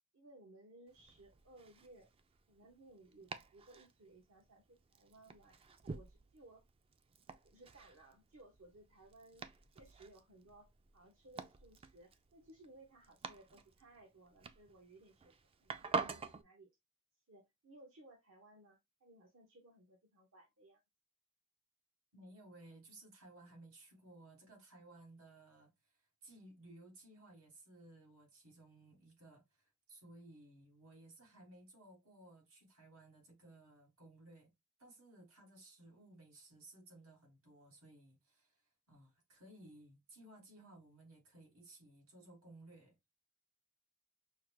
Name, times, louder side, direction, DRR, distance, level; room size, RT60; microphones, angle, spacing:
voice 1, 0.1-2.1 2.5-6.6 7.4-9.4 9.7-15.3 15.6-16.7 17.3-20.8, right 2 dB, 65° right, 0.9 m, -61 dB
Domestic sounds home sounds, 0.9-16.4, right 4 dB, 25° right, 0.3 m, -48 dB
voice 2, 22.1-25.7 26.2-34.5 34.8-38.6 38.9-43.0, right 2 dB, 85° right, 1.7 m, -59 dB
5.5 x 2.1 x 2.9 m
head